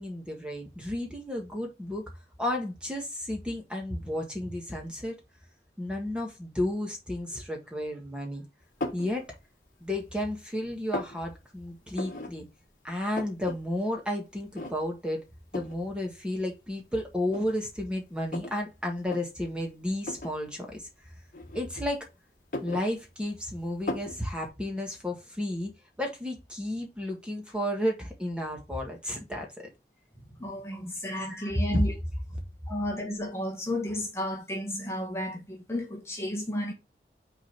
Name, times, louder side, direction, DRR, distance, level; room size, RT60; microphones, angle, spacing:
voice 1, 0.0-2.0 2.4-5.1 5.8-8.4 8.9-9.3 9.8-12.5 12.8-15.2 15.5-20.9 21.5-22.1 22.6-25.7 26.0-29.7 30.7-30.9 31.3-31.5, left 1 dB, 5° right, 1.5 m, -32 dB
sound 1, 8.8-9.1 9.7-10.3 10.6-11.2 11.9-12.3 12.6-12.7 12.9-13.6 13.9-14.0 14.5-15.0 15.5-15.8 16.6-16.7 17.3-18.6 19.0-19.2 20.0-20.4 21.3-22.0 22.3-23.4 23.9-24.2, left 2 dB, 50° left, 1.4 m, -36 dB
voice 2, 30.4-31.9 32.7-36.7, left 1 dB, 15° left, 1.3 m, -32 dB
6.0 x 3.9 x 4.5 m
head